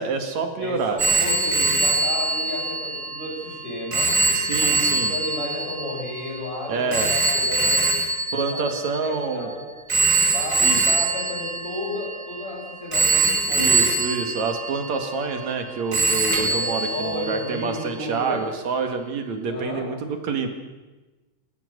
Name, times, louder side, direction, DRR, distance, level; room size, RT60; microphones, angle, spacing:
voice 1, 0.0-1.0 4.3-5.1 6.7-7.1 8.3-9.5 10.6-10.9 13.5-20.5, right 4 dB, 70° right, 5 dB, 3.2 m, -27 dB
voice 2, 0.6-4.1 4.6-4.7 5.0-8.0 8.5-9.7 10.3-13.9 16.4-18.5 19.5-19.9, left 2 dB, 65° left, -2 dB, 8.1 m, -33 dB
Telephone, 1.0-9.3 9.9-12.4 12.9-15.6 15.9-17.6, right 3 dB, 25° right, 4.6 m, -23 dB
29.0 x 14.0 x 6.8 m, 1.2 s
omnidirectional pair, 3.4 m